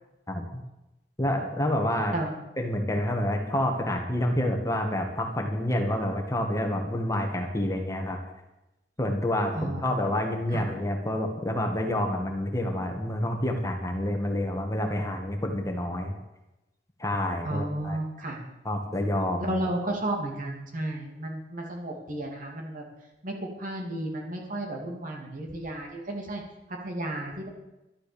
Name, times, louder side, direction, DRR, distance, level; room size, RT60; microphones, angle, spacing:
voice 1, 0.3-0.6 1.2-2.1 2.6-8.2 9.0-16.1 17.0-18.0 18.7-19.5, left 1 dB, 20° left, 2 dB, 1.7 m, -28 dB
voice 2, 9.5-10.0 10.5-10.6 17.4-18.4 19.4-22.8 23.2-26.4 26.7-27.5, right 1 dB, 50° right, 0 dB, 2.6 m, -33 dB
12.0 x 11.5 x 7.0 m, 0.95 s
head